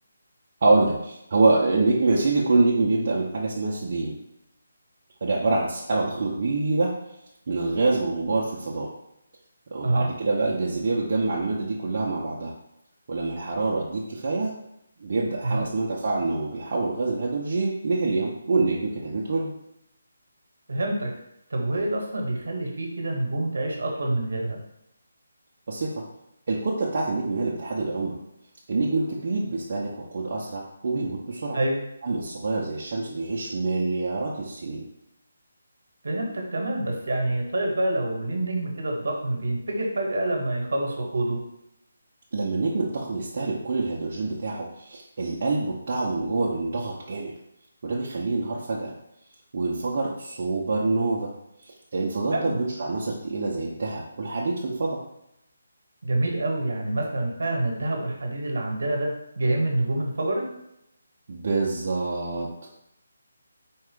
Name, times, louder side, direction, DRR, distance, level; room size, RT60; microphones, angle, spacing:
voice 1, 0.6-4.1 5.2-6.9 7.5-8.9 9.7-12.5 13.1-14.5 15.0-19.5 25.7-26.0 26.5-28.2 28.7-31.6 32.0-34.8 42.3-47.3 47.8-48.9 49.5-51.3 51.6-55.0 61.3-62.5, right 3 dB, 50° right, -4 dB, 0.7 m, -26 dB
voice 2, 20.7-21.1 21.5-24.6 31.5-31.8 36.0-41.4 52.3-52.6 56.0-59.1 59.4-60.4, right 1 dB, 70° right, 0 dB, 1.1 m, -26 dB
4.5 x 2.4 x 3.7 m, 0.80 s
figure-of-eight pair, 155°, 0 cm